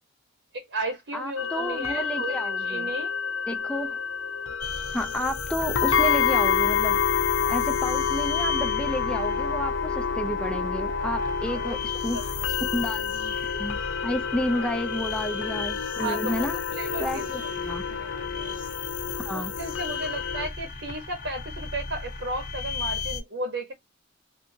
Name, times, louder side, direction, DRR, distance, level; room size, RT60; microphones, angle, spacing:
voice 1, 0.5-2.4 2.6-3.1 11.6-11.8 12.1-12.2 14.5-14.7 16.0-16.5 16.7-17.3 17.9-18.6 19.3-23.7, right 2 dB, 65° right, 1.0 m, -34 dB
voice 2, 1.1-2.9 3.5-4.0 4.9-12.3 12.7-13.8 14.0-16.6 17.0-17.9 19.2-19.5, equal, 5° left, 0.4 m, -31 dB
sound 1, 1.4-20.5, left 7 dB, 80° left, 0.6 m, -29 dB
sound 2, 4.6-23.2, left 4 dB, 45° left, 0.9 m, -34 dB
3.4 x 2.7 x 2.7 m
head